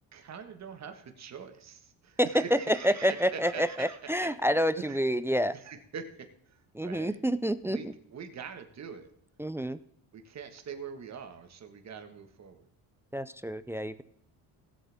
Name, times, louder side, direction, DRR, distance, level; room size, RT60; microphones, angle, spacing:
voice 1, 0.1-4.3 4.8-5.0 5.5-7.2 7.6-9.1 10.1-12.7, right 6 dB, 40° right, 7 dB, 1.6 m, -43 dB
voice 2, 2.7-5.5 6.7-7.9 9.4-9.8 13.1-14.0, equal, 5° right, 14 dB, 0.3 m, -28 dB
17.0 x 7.9 x 3.6 m, 0.71 s
cardioid pair, 110°, 40 cm